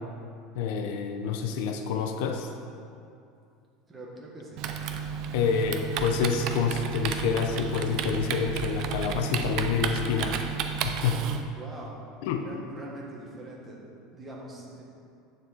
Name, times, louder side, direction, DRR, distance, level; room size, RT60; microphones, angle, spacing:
voice 1, 0.5-2.5 5.3-10.5 10.8-11.2 12.2-12.4, left 6 dB, 65° left, 5 dB, 0.7 m, -28 dB
voice 2, 3.9-4.7 11.5-11.9 12.4-14.8, right 1 dB, 15° right, -3 dB, 1.4 m, -43 dB
Typing, 4.6-11.4, right 6 dB, 40° right, 0.5 m, -32 dB
9.1 x 7.1 x 4.1 m, 2.5 s
cardioid pair, 175°, 0 cm